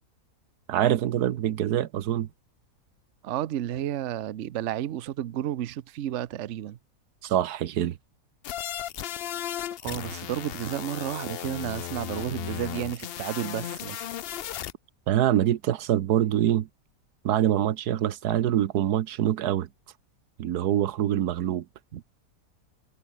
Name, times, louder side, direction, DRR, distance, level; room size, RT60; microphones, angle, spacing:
voice 1, 0.7-2.3 7.2-8.0 15.1-16.7 17.2-19.7 20.4-21.6, right 11 dB, 90° right, 1.4 m, -25 dB
voice 2, 3.2-6.8 9.8-14.1 21.9-22.0, right 11 dB, 60° right, 0.9 m, -32 dB
sound 1, 8.4-14.7, left 11 dB, 70° left, 0.5 m, -35 dB
omnidirectional pair, 1.6 m